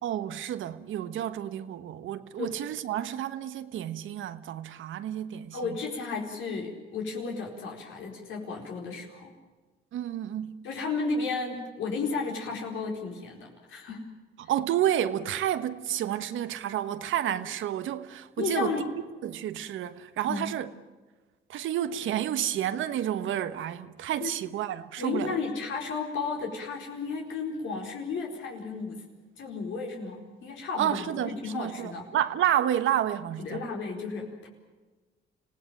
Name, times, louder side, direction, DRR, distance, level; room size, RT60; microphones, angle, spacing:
voice 1, 0.0-5.6 9.9-10.6 14.5-18.8 19.2-20.7 21.5-25.3 30.8-33.6, right 11 dB, 75° right, 1.2 m, -30 dB
voice 2, 5.5-9.3 10.6-14.0 18.4-18.9 20.3-20.5 24.2-24.3 25.0-29.0 29.4-32.1 33.4-34.5, left 4 dB, 80° left, 4.5 m, -33 dB
26.0 x 17.5 x 8.9 m
cardioid pair, 90°, 20 cm